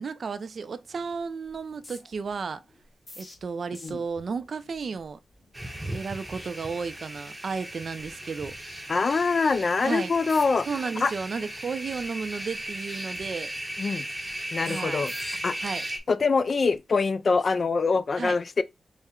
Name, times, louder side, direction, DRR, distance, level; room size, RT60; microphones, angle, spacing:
voice 1, 0.0-2.6 3.2-5.2 5.9-8.5 9.8-10.1 10.7-13.5 14.6-15.1 15.6-15.8 18.2-18.4, right 5 dB, 55° right, 0.4 m, -33 dB
sound 1, 0.9-1.2 1.4-7.2 7.5-7.7 8.0-8.9 9.3-9.6 10.2-10.7 11.1-12.6 12.9-15.9 16.4-16.8, left 1 dB, 30° left, 1.1 m, -52 dB
sound 2, 5.5-16.0, right 1 dB, 10° right, 0.7 m, -37 dB
voice 2, 8.9-10.7 11.0-11.1 13.8-14.1 14.5-15.6 16.1-18.6, left 4 dB, 45° left, 0.3 m, -24 dB
4.3 x 2.1 x 3.6 m
wide cardioid pair, 120°, 0 cm